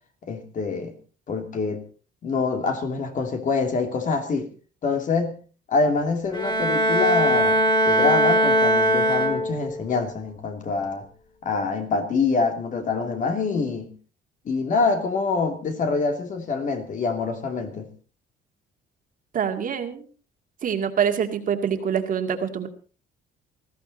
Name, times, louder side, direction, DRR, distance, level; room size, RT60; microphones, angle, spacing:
voice 1, 0.2-0.9 1.3-1.8 2.2-4.5 4.8-5.4 5.7-11.1 11.4-13.9 14.4-17.9, left 4 dB, 40° left, 6 dB, 2.8 m, -25 dB
Bowed string instrument, 6.3-9.8, right 1 dB, 20° left, 3.1 m, -20 dB
voice 2, 19.3-20.0 20.6-22.7, right 8 dB, 45° right, 5 dB, 2.2 m, -25 dB
19.5 x 14.5 x 4.2 m, 0.37 s
cardioid pair, 145°, 20 cm